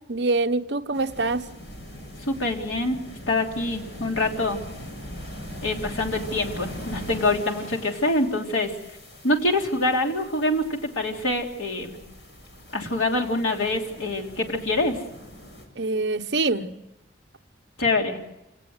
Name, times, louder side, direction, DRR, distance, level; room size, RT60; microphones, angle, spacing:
voice 1, 0.1-1.5 15.8-16.7, right 3 dB, 55° right, 0.9 m, -25 dB
sound 1, 0.9-15.6, equal, 60° left, 6.7 m, -41 dB
voice 2, 2.2-3.0 3.3-4.6 5.6-8.7 9.2-10.7 10.9-12.0 12.7-15.0 17.8-18.2, left 2 dB, 90° left, 3.4 m, -25 dB
28.5 x 18.0 x 8.0 m
head